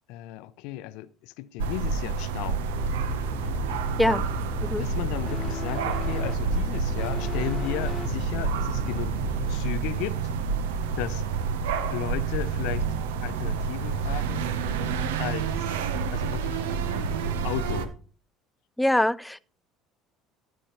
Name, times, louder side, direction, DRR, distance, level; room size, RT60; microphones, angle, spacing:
voice 1, 0.1-2.7 4.0-4.2 4.8-9.2 9.5-10.2 11.0-11.2 11.9-12.9 13.2-14.5 15.2-15.7 16.1-16.7 17.4-17.9, left 15 dB, 70° left, 0.5 m, -35 dB
sound 1, 1.6-17.9, right 5 dB, 80° right, 0.9 m, -28 dB
sound 2, 2.7-9.6, left 7 dB, 40° left, 1.1 m, -36 dB
sound 3, 12.0-12.4 13.2-17.9, right 2 dB, 15° right, 1.1 m, -43 dB
voice 2, 18.8-19.4, left 1 dB, 5° left, 0.4 m, -23 dB
13.5 x 7.2 x 3.1 m
hypercardioid pair, 70°, 0 cm